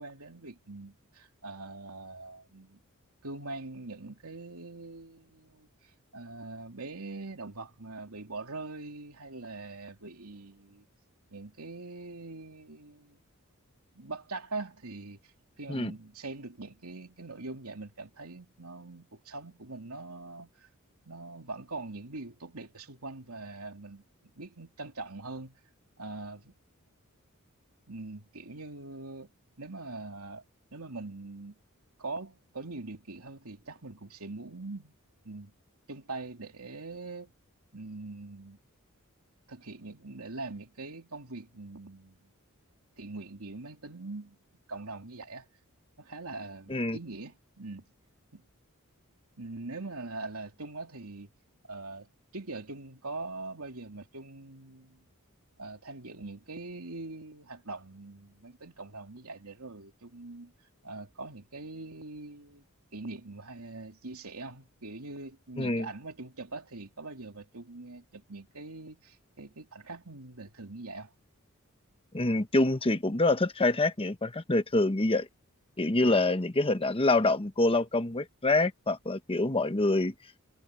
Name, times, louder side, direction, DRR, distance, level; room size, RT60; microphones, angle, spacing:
voice 1, 0.0-2.8 3.2-5.7 6.1-10.8 11.3-13.2 13.9-15.2 15.6-20.7 21.0-24.0 24.4-25.6 26.0-26.5 27.9-29.3 29.6-30.4 30.7-31.5 32.0-34.9 35.2-35.5 35.9-37.3 37.7-38.6 39.5-42.2 43.0-44.4 44.7-45.4 46.0-47.9 48.3-48.4 49.4-51.3 51.7-55.0 55.6-60.5 60.8-62.6 62.9-71.1 76.0-76.2, right 3 dB, 80° right, 3.0 m, -42 dB
voice 2, 65.6-65.9 72.1-75.3 75.8-80.1, left 2 dB, 25° left, 1.1 m, -26 dB
head